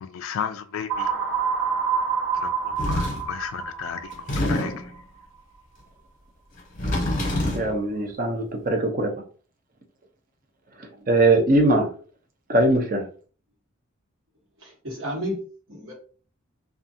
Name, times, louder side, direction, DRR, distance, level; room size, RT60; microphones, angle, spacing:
voice 1, 0.0-1.1 2.4-4.1 4.5-4.7, left 7 dB, 75° left, 0.3 m, -33 dB
sound 1, 0.9-4.8, right 6 dB, 90° right, 0.8 m, -27 dB
sound 2, 2.8-3.3 4.1-4.9 6.6-7.7, left 1 dB, 35° left, 0.8 m, -26 dB
voice 2, 7.5-9.1 10.8-11.9 12.5-13.1, right 2 dB, 40° right, 0.6 m, -21 dB
voice 3, 14.6-15.9, equal, 70° right, 1.2 m, -33 dB
2.4 x 2.3 x 2.7 m
head